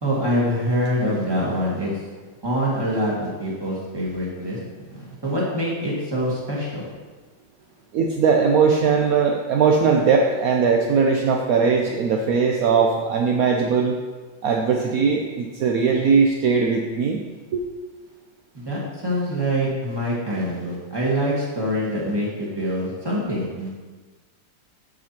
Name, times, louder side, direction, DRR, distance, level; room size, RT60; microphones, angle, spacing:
voice 1, 0.0-1.9 2.4-4.6 5.0-6.8 18.5-23.7, equal, 15° right, -5 dB, 1.7 m, -25 dB
voice 2, 7.9-14.0 14.4-17.2 17.5-17.6, right 5 dB, 70° right, 1 dB, 0.8 m, -19 dB
13.5 x 5.0 x 2.9 m, 1.4 s
omnidirectional pair, 2.1 m